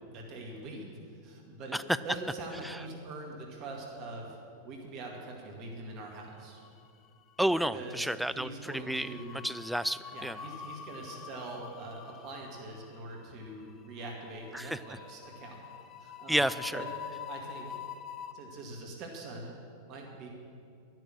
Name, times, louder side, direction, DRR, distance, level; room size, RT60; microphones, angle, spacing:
voice 1, 0.0-6.6 7.7-9.4 10.1-15.6 16.0-16.4 16.7-16.9 17.3-17.8 18.3-19.5 19.9-20.3, right 2 dB, 40° right, 0 dB, 2.0 m, -43 dB
sound 1, 6.3-7.1 7.3-7.6 8.8-18.3, left 8 dB, 30° left, 0.7 m, -46 dB
voice 2, 7.4-10.4 14.5-14.8 16.3-16.8, right 1 dB, ahead, 13 dB, 0.4 m, -31 dB
12.0 x 11.0 x 6.5 m, 2.4 s
figure-of-eight pair, 90°, 0 cm